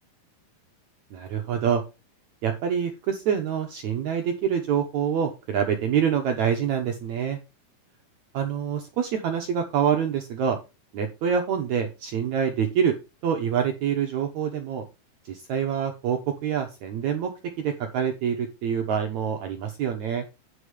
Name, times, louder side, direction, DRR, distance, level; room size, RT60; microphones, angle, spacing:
voice 1, 1.1-1.8 2.4-7.4 8.3-10.6 10.9-13.0 13.2-14.8 15.2-17.3 17.6-20.2, right 8 dB, 75° right, 4 dB, 1.7 m, -26 dB
9.8 x 5.5 x 5.0 m, 0.28 s
omnidirectional pair, 4.4 m